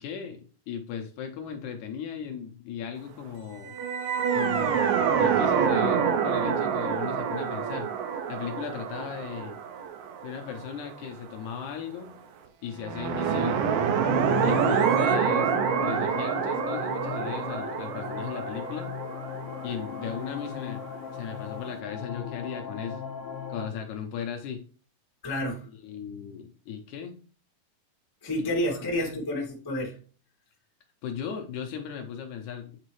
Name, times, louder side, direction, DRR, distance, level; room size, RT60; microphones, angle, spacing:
voice 1, 0.0-3.7 4.3-7.9 8.3-9.6 10.2-12.2 12.6-13.7 14.4-15.5 15.8-18.9 19.6-20.9 21.1-23.0 23.5-24.6 25.8-27.2 28.4-29.2 31.0-32.8, left 7 dB, 70° left, 4 dB, 2.0 m, -37 dB
sound 1, 3.7-10.9 12.8-20.6, right 7 dB, 80° right, 2.5 m, -27 dB
sound 2, 13.7-23.7, left 8 dB, 90° left, 2.5 m, -37 dB
voice 2, 25.2-25.7 28.2-30.0, left 1 dB, 20° left, 0 dB, 0.6 m, -30 dB
8.4 x 3.9 x 3.1 m, 0.39 s
omnidirectional pair, 4.0 m